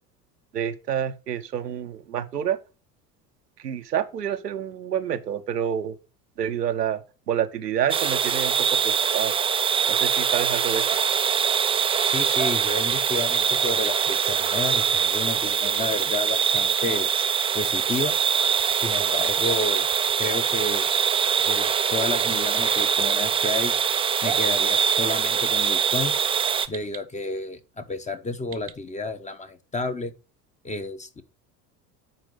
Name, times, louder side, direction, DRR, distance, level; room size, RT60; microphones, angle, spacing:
voice 1, 0.5-2.6 3.6-5.9 6.4-7.0 7.3-9.3 9.9-10.9, right 9 dB, 90° right, 0.8 m, -28 dB
sound 1, 7.9-26.7, right 7 dB, 15° right, 0.4 m, -23 dB
voice 2, 12.0-17.1 17.5-18.2 18.8-19.9 20.2-20.9 21.4-23.7 24.2-26.2 26.7-30.1 30.6-31.2, left 3 dB, 15° left, 0.9 m, -31 dB
sound 2, 12.9-14.2 15.4-16.8 18.6-20.2 21.5-23.1 24.5-25.5 26.0-27.0 28.5-28.7, right 10 dB, 30° right, 0.9 m, -36 dB
10.5 x 4.5 x 3.8 m
figure-of-eight pair, 70°, 47 cm